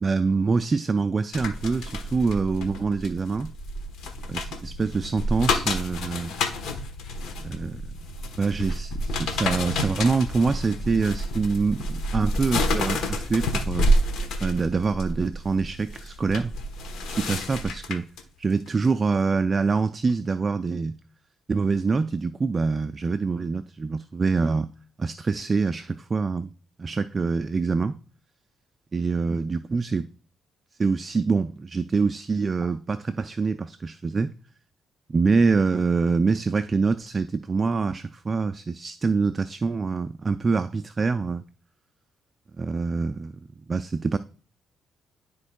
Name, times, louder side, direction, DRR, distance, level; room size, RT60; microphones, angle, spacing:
voice 1, 0.0-3.5 4.3-6.3 7.4-7.8 8.4-13.9 14.4-16.5 17.1-18.1 18.4-21.0 21.5-24.7 25.0-26.5 26.8-28.0 28.9-30.1 30.8-34.3 35.1-41.4 42.6-43.3 43.7-44.2, right 4 dB, 30° right, 0.3 m, -25 dB
sound 1, 1.3-18.2 18.7-18.9, left 1 dB, 80° left, 1.1 m, -29 dB
12.5 x 4.5 x 2.3 m
cardioid pair, 90°, 0 cm